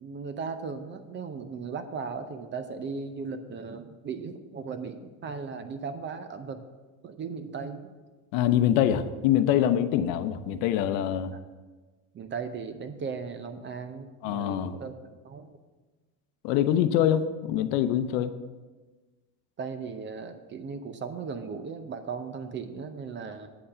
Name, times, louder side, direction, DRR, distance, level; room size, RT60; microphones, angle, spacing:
voice 1, 0.0-6.6 7.0-7.9 11.3-11.4 12.1-14.9 15.2-15.5 19.6-23.5, right 5 dB, 25° right, 9 dB, 0.6 m, -37 dB
voice 2, 8.3-11.3 14.2-14.8 16.4-18.3, left 10 dB, 70° left, 11 dB, 0.8 m, -24 dB
8.7 x 5.5 x 6.7 m, 1.3 s
supercardioid pair, 125°, 43 cm